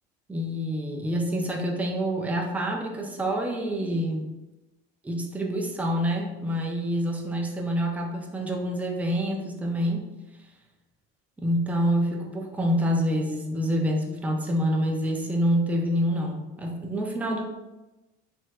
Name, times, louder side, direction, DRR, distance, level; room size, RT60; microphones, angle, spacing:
voice 1, 0.3-4.3 5.0-10.1 11.4-17.4, equal, 5° right, 1 dB, 0.4 m, -27 dB
3.2 x 2.7 x 2.3 m, 1.0 s
supercardioid pair, 100°, 30 cm